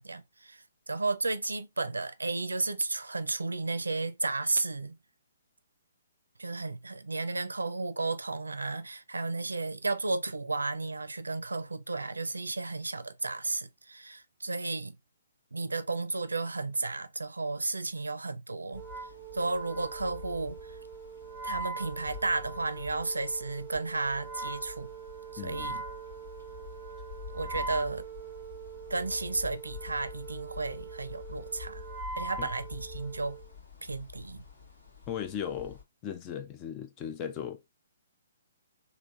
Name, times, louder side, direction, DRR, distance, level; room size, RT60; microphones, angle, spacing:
voice 1, 0.0-5.0 6.4-15.0 15.5-18.9 19.3-20.8 21.4-24.9 25.3-25.8 27.3-28.0 28.9-31.8 32.2-33.4 33.8-34.4, right 3 dB, 85° right, 0.4 m, -33 dB
sound 1, 18.7-35.8, left 6 dB, 70° left, 1.4 m, -48 dB
Wind instrument woodwind instrument, 18.7-33.5, right 5 dB, 5° right, 0.7 m, -42 dB
voice 2, 25.4-25.8 32.4-32.5 35.1-37.7, left 9 dB, 25° left, 0.4 m, -37 dB
3.3 x 2.8 x 2.4 m
figure-of-eight pair, 135°, 0 cm